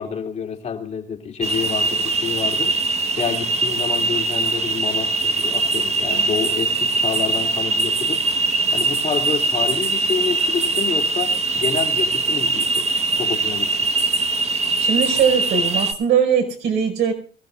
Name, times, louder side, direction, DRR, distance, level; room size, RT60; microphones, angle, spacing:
voice 1, 0.0-2.8 3.2-8.2 8.7-12.9 13.2-13.7, left 6 dB, 45° left, 2.7 m, -28 dB
sound 1, 1.4-15.9, right 3 dB, 40° right, 1.4 m, -22 dB
voice 2, 14.8-17.1, right 7 dB, 80° right, 5.4 m, -20 dB
25.0 x 15.0 x 2.5 m
cardioid pair, 110°, 17 cm